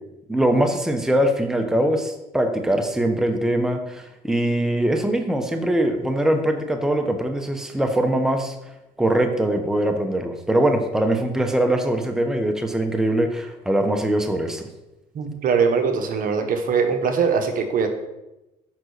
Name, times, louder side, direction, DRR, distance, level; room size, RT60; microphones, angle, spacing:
voice 1, 0.3-8.5 9.0-14.6, right 1 dB, 5° right, 4 dB, 1.0 m, -22 dB
voice 2, 15.1-17.9, right 5 dB, 55° right, 5 dB, 1.2 m, -21 dB
7.6 x 5.4 x 6.6 m, 0.95 s
cardioid pair, 110°, 17 cm